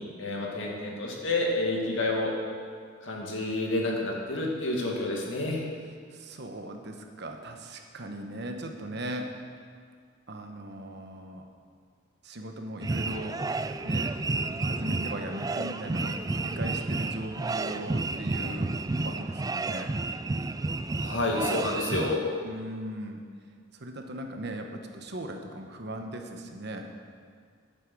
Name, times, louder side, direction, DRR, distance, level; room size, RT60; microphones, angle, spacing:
voice 1, 0.2-2.3 3.0-5.6 21.0-22.2, left 2 dB, 70° left, -2 dB, 2.3 m, -29 dB
voice 2, 6.1-9.3 10.3-11.5 12.2-13.4 13.8-14.2 14.6-18.7 19.0-19.9 22.4-23.2 23.7-26.9, right 1 dB, 60° right, 4 dB, 1.2 m, -38 dB
sound 1, 12.8-22.2, right 3 dB, 20° right, 0.3 m, -31 dB
11.5 x 9.2 x 6.3 m, 2.1 s
head